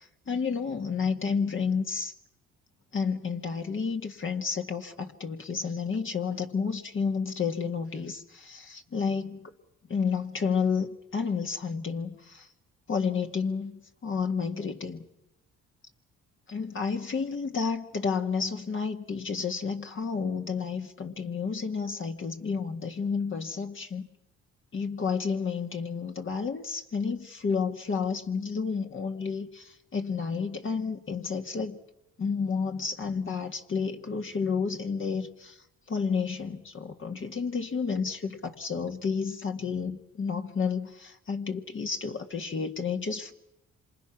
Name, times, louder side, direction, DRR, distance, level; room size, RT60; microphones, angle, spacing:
voice 1, 0.3-2.1 2.9-9.5 9.9-12.5 12.9-13.7 14.0-15.0 16.5-24.1 24.7-31.8 32.2-35.5 35.9-43.3, left 5 dB, 40° left, 4 dB, 1.9 m, -31 dB
26.5 x 25.5 x 6.0 m, 0.86 s
cardioid pair, 90°, 30 cm